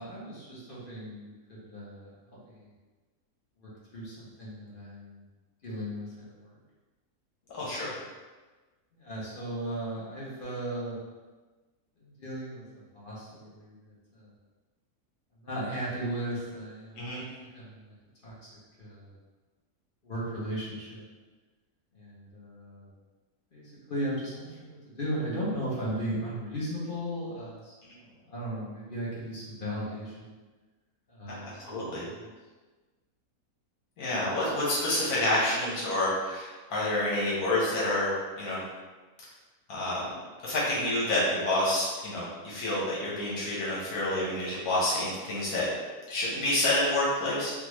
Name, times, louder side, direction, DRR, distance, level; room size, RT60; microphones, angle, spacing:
voice 1, 0.0-2.7 3.6-5.2 5.6-6.6 8.9-11.0 12.0-14.3 15.4-18.0 18.2-19.1 20.0-21.0 21.9-22.9 23.5-30.3 31.1-32.3, right 1 dB, 40° left, -7 dB, 0.9 m, -37 dB
voice 2, 7.5-7.9 17.0-17.3 31.3-31.4 31.6-32.1 34.0-38.6 39.7-40.1 40.4-45.7 46.1-47.5, left 1 dB, 85° left, -7 dB, 1.5 m, -28 dB
3.5 x 2.4 x 3.0 m, 1.3 s
omnidirectional pair, 1.6 m